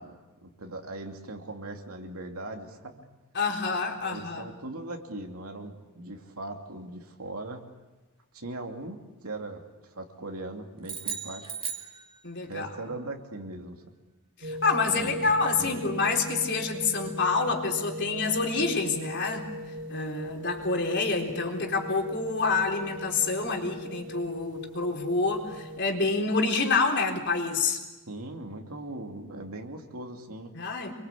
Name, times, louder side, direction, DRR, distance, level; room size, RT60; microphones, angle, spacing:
voice 1, 0.0-3.1 4.0-7.6 8.3-11.5 12.5-13.9 14.9-15.3 15.6-15.8 28.1-30.5, right 2 dB, 75° right, 3 dB, 2.9 m, -40 dB
voice 2, 3.3-4.5 12.2-12.7 14.4-19.5 19.9-27.8 30.5-30.9, left 4 dB, 55° left, 2 dB, 4.0 m, -27 dB
sound 1, 10.8-12.6, right 6 dB, 25° right, 2.7 m, -37 dB
sound 2, 14.4-25.8, equal, 55° right, 4.1 m, -39 dB
27.5 x 23.0 x 8.5 m, 1.1 s
head